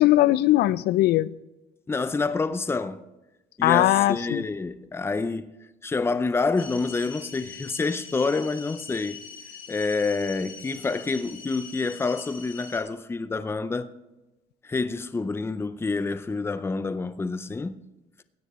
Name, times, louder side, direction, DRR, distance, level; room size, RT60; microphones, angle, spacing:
voice 1, 0.0-1.3 3.6-4.5, left 15 dB, 75° left, 0.5 m, -20 dB
voice 2, 1.9-3.0 3.6-5.5 5.8-9.2 9.7-13.9 14.6-17.7, left 3 dB, 15° left, 0.6 m, -27 dB
sound 1, 6.6-12.8, left 6 dB, 55° left, 2.2 m, -43 dB
16.5 x 10.5 x 3.1 m
cardioid pair, 110°, 17 cm